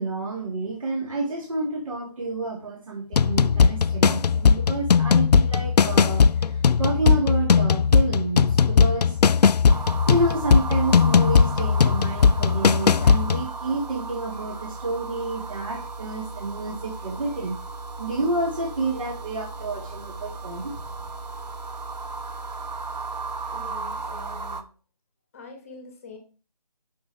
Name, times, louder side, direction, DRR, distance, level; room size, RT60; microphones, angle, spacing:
voice 1, 0.0-6.2 6.8-9.1 10.1-17.6 18.0-20.8, right 2 dB, 55° right, -1 dB, 1.8 m, -29 dB
sound 1, 3.1-13.5, left 6 dB, 80° left, 0.4 m, -19 dB
sound 2, 9.7-24.6, right 3 dB, 80° right, 1.0 m, -35 dB
voice 2, 23.5-24.6 25.3-26.2, left 4 dB, 20° left, 4 dB, 1.1 m, -44 dB
6.1 x 5.8 x 3.3 m, 0.35 s
figure-of-eight pair, 165°, 21 cm